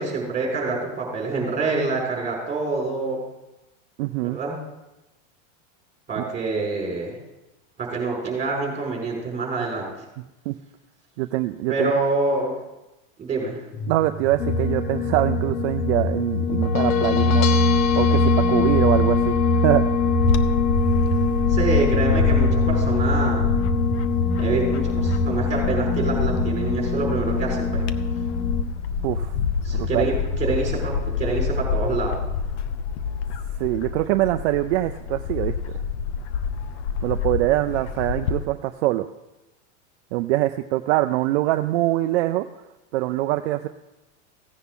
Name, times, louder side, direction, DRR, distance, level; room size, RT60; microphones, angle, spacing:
voice 1, 0.0-3.2 4.3-4.6 6.1-7.2 7.8-9.9 11.7-12.6 13.2-13.6 21.5-23.5 24.4-27.8 29.6-32.2, right 3 dB, 15° right, -2 dB, 4.8 m, -26 dB
voice 2, 4.0-4.4 6.2-6.3 10.5-10.6 11.2-11.9 13.9-17.5 18.0-19.8 29.0-29.3 29.7-30.1 33.6-35.6 37.0-39.1 40.1-42.4 42.9-43.7, right 16 dB, 55° right, 7 dB, 0.6 m, -23 dB
sound 1, 13.7-30.2, left 1 dB, 35° left, 2.1 m, -31 dB
sound 2, 14.4-28.6, left 3 dB, 90° left, 1.0 m, -23 dB
Bird / Wind, 20.2-38.5, left 6 dB, 60° left, 0.9 m, -27 dB
16.0 x 9.9 x 3.7 m, 0.99 s
supercardioid pair, 145°, 39 cm